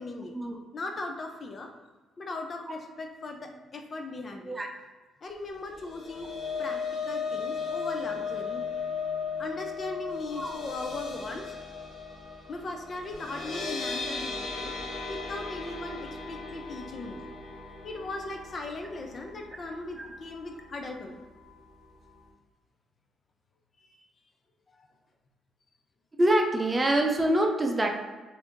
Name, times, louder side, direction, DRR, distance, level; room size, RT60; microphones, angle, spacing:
voice 1, 0.0-0.4 0.7-1.7 2.2-4.6 5.2-6.3 6.6-8.6 9.4-11.5 12.5-17.2 17.8-21.2 23.8-24.0 24.7-24.9, left 2 dB, 45° left, 3 dB, 0.5 m, -38 dB
sound 1, 5.7-20.0 20.3-20.6 20.9-21.0, left 5 dB, 80° left, 0.7 m, -36 dB
voice 2, 26.2-27.9, right 1 dB, 20° right, 2 dB, 0.5 m, -25 dB
2.8 x 2.6 x 3.5 m, 1.2 s
cardioid pair, 90°, 0 cm